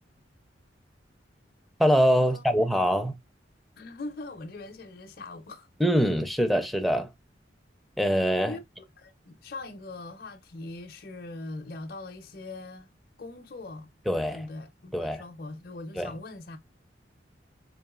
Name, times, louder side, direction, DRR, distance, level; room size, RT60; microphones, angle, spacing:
voice 1, 1.8-3.1 5.8-7.1 8.0-8.6 14.1-14.5 14.9-15.2 16.0-16.1, equal, ahead, 0.5 m, -24 dB
voice 2, 3.8-5.7 8.5-8.6 9.0-12.9 13.2-13.9 14.3-16.6, left 2 dB, 55° left, 0.6 m, -41 dB
3.8 x 3.5 x 2.3 m
head